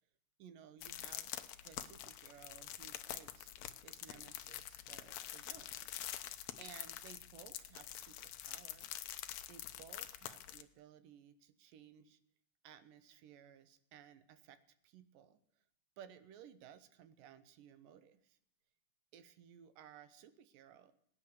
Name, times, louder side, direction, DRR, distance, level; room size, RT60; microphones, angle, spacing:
voice 1, 0.4-3.5 3.8-5.9 6.6-8.9 9.5-12.2 12.6-14.6 14.8-15.4 16.0-18.4 19.1-21.0, right 9 dB, 75° right, 12 dB, 2.5 m, -58 dB
sound 1, 0.8-10.6, left 12 dB, 85° left, 1.5 m, -47 dB
17.5 x 10.0 x 7.0 m, 0.69 s
omnidirectional pair, 4.0 m